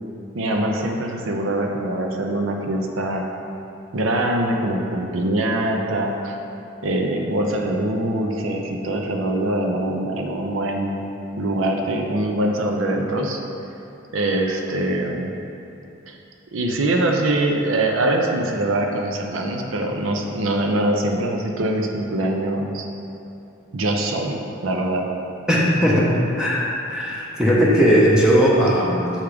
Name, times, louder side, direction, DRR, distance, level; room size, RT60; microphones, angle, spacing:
voice 1, 0.3-3.2 3.9-6.3 6.8-11.0 11.4-13.4 14.1-15.3 16.1-16.2 16.5-22.9 23.7-25.1, right 1 dB, 75° right, 2 dB, 0.6 m, -23 dB
voice 2, 25.5-26.1 26.4-29.1, equal, 5° right, -6 dB, 0.7 m, -18 dB
7.2 x 3.5 x 5.0 m, 2.8 s
head